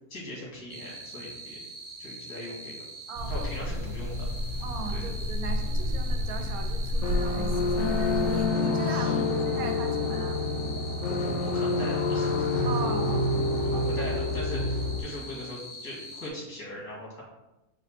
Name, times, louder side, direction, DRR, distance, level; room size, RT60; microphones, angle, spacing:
voice 1, 0.1-1.6 2.0-2.8 3.3-4.3 4.9-5.0 8.8-9.2 11.1-12.7 13.6-17.2, left 1 dB, 90° left, -5 dB, 2.1 m, -40 dB
sound 1, 0.7-16.3, right 1 dB, 15° right, 0.6 m, -43 dB
voice 2, 3.1-3.5 4.6-10.4 12.6-13.4 13.7-13.8, right 4 dB, 75° right, 4 dB, 1.0 m, -38 dB
sound 2, 3.2-8.5, left 1 dB, 55° right, 1.1 m, -30 dB
sound 3, 7.0-15.0, left 3 dB, 70° left, 0.7 m, -27 dB
4.2 x 2.5 x 4.1 m, 0.99 s
omnidirectional pair, 1.6 m